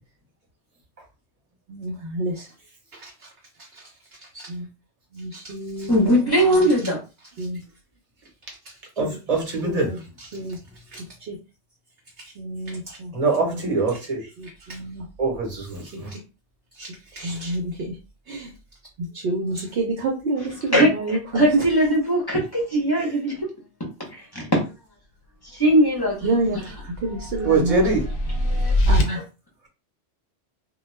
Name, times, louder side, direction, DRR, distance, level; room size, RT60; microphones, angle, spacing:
voice 1, 1.7-2.5 2.9-3.3 3.6-3.9 4.2-4.7 5.1-6.9 7.4-7.7 9.0-9.2 9.6-10.0 10.3-10.6 10.9-11.4 12.2-13.1 13.4-13.6 14.4-15.1 15.9-16.2 16.7-18.0 18.3-18.5 19.0-21.6 23.0-23.1 26.2-27.8 28.9-29.2, right 2 dB, 60° right, 0.8 m, -29 dB
voice 2, 5.9-7.0 20.7-23.5 23.8-24.7 25.5-26.3 27.4-27.9 28.3-28.7 29.1-29.2, equal, 25° left, 0.7 m, -21 dB
voice 3, 9.0-9.9 13.1-14.2 15.2-16.1 27.4-28.1, right 3 dB, 35° right, 0.9 m, -23 dB
sound 1, 26.2-29.0, left 1 dB, 60° left, 0.7 m, -23 dB
2.3 x 2.2 x 3.1 m
omnidirectional pair, 1.2 m